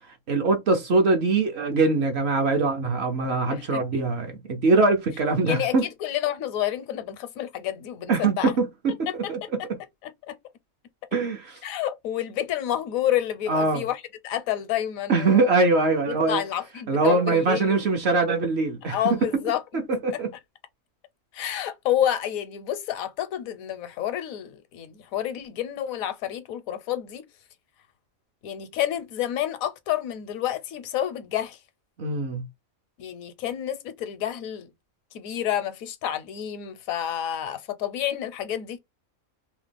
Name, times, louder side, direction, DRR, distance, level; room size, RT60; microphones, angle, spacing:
voice 1, 0.3-5.9 8.1-9.4 11.1-11.6 13.5-13.8 15.1-16.4 16.9-19.4 19.7-20.3 32.0-32.4, right 3 dB, 55° right, 0.8 m, -23 dB
voice 2, 3.5-4.0 5.5-8.6 9.1-9.3 9.6-9.7 10.0-10.4 11.6-15.6 16.1-17.8 18.9-19.8 20.1-20.2 21.3-27.3 28.4-31.6 33.0-34.7 35.1-38.8, left 11 dB, 80° left, 1.0 m, -29 dB
2.9 x 2.1 x 3.2 m
omnidirectional pair, 1.5 m